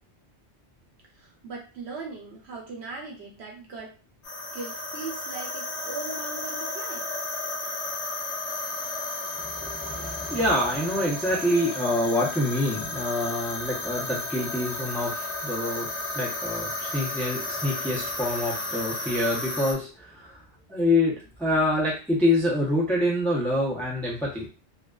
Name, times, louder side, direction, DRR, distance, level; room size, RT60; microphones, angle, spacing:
voice 1, 1.1-4.0 4.5-7.1, right 4 dB, 70° right, -1 dB, 1.0 m, -39 dB
sound 1, 4.2-19.7, left 2 dB, 75° left, 1.0 m, -33 dB
voice 2, 9.4-15.9 16.1-20.4 20.7-24.5, left 1 dB, ahead, -4 dB, 0.6 m, -26 dB
2.4 x 2.3 x 2.2 m, 0.34 s
omnidirectional pair, 1.2 m